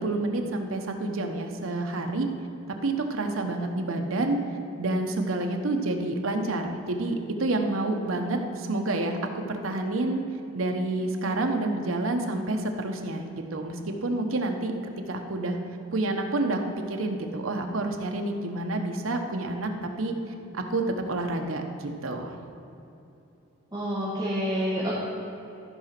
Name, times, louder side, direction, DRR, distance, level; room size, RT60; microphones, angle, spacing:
voice 1, 0.0-2.3 2.8-4.4 4.8-10.2 10.5-15.6 15.9-20.2 20.5-22.4, right 2 dB, 80° right, 4 dB, 1.0 m, -28 dB
voice 2, 23.7-24.9, equal, 20° right, -8 dB, 1.6 m, -28 dB
14.0 x 5.0 x 5.9 m, 2.9 s
head